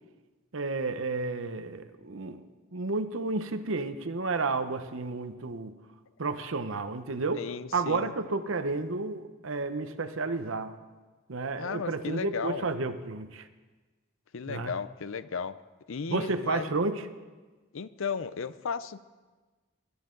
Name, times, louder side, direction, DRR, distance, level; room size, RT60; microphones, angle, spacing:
voice 1, 0.5-2.4 2.7-5.7 6.2-7.4 7.7-10.7 11.3-13.5 14.5-14.7 16.1-17.1, right 3 dB, 70° right, 10 dB, 0.8 m, -31 dB
voice 2, 7.3-8.1 11.6-12.7 14.3-15.5 15.9-16.7 17.7-19.0, left 5 dB, 70° left, 15 dB, 0.5 m, -35 dB
21.0 x 11.5 x 3.9 m, 1.3 s
head